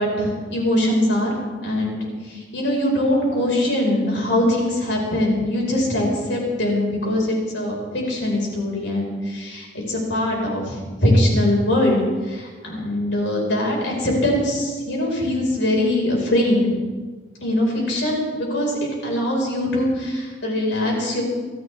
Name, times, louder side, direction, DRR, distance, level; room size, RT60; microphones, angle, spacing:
voice 1, 0.0-16.7 17.4-21.2, left 1 dB, 85° left, -2 dB, 5.5 m, -22 dB
27.0 x 13.0 x 3.6 m, 1.4 s
head